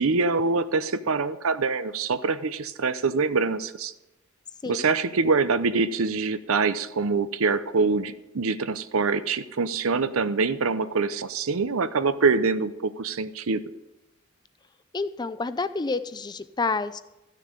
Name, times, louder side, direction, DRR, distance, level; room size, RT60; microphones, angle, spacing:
voice 1, 0.0-3.9 4.7-13.6, right 4 dB, 80° right, 13 dB, 0.7 m, -25 dB
voice 2, 14.9-17.0, left 3 dB, 20° left, 13 dB, 0.4 m, -29 dB
14.5 x 6.6 x 6.7 m, 0.96 s
head